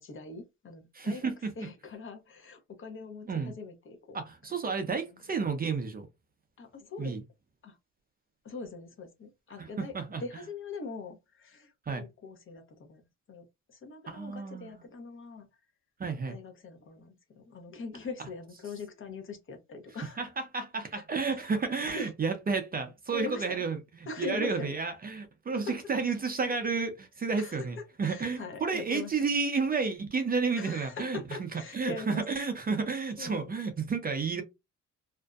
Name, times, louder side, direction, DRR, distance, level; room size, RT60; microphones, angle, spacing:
voice 1, 0.0-1.3 1.6-4.2 6.6-7.2 7.6-7.7 8.4-13.0 13.3-15.5 16.3-20.2 20.9-21.0 21.3-21.4 21.9-22.1 23.1-23.7 24.1-24.7 25.5-25.8 27.4-29.1 30.5-32.2 33.2-33.5, left 4 dB, 40° left, 0.7 m, -42 dB
voice 2, 0.9-1.5 3.3-3.5 4.1-6.1 7.0-7.2 9.6-10.2 11.9-12.0 14.1-14.9 16.0-16.4 20.2-34.4, right 4 dB, 30° right, 0.5 m, -31 dB
2.6 x 2.1 x 2.3 m
cardioid pair, 90°, 31 cm